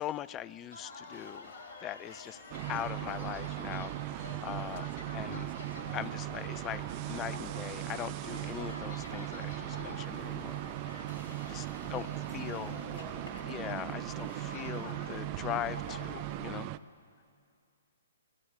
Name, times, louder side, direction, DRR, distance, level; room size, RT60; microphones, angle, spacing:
voice 1, 0.0-1.5 1.8-2.4 2.7-4.9 5.1-5.5 5.9-10.6 11.5-12.1 12.3-12.8 13.5-16.8, left 12 dB, 25° left, 20 dB, 0.5 m, -40 dB
sound 1, 0.7-16.4, left 3 dB, 50° left, 3.5 m, -48 dB
sound 2, 2.5-16.8, right 17 dB, 35° right, 0.6 m, -38 dB
voice 2, 11.7-13.4 14.5-14.9, right 1 dB, 5° right, -4 dB, 5.6 m, -52 dB
27.0 x 18.0 x 7.1 m, 2.4 s
figure-of-eight pair, 125°, 0 cm